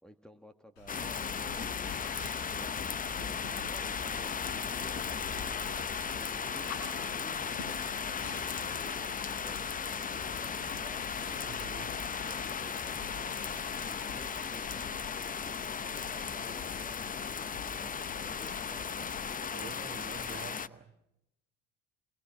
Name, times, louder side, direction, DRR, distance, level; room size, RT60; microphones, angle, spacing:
voice 1, 0.0-1.9 2.5-7.8 8.5-8.8 9.3-11.1 12.3-15.0 15.4-20.1, equal, ahead, 1.6 m, -55 dB
sound 1, 0.8-19.3, left 5 dB, 85° left, 4.6 m, -48 dB
sound 2, 0.9-20.7, left 6 dB, 25° left, 0.8 m, -36 dB
sound 3, 7.3-14.9, left 12 dB, 60° left, 1.3 m, -52 dB
voice 2, 11.5-11.9 19.5-21.0, right 7 dB, 30° right, 2.0 m, -47 dB
27.0 x 22.0 x 6.2 m
supercardioid pair, 75°, 33 cm